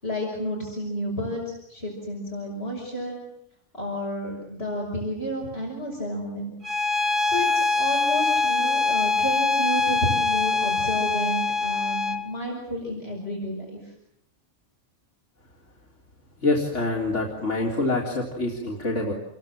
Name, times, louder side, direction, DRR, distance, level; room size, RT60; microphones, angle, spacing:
voice 1, 0.0-3.2 3.7-6.5 7.3-13.6, equal, 60° left, -1 dB, 6.7 m, -31 dB
Bowed string instrument, 6.6-12.3, left 4 dB, 45° right, 1.9 m, -23 dB
voice 2, 16.4-19.1, left 2 dB, 75° left, -2 dB, 4.1 m, -25 dB
29.0 x 22.5 x 7.6 m, 0.82 s
omnidirectional pair, 1.2 m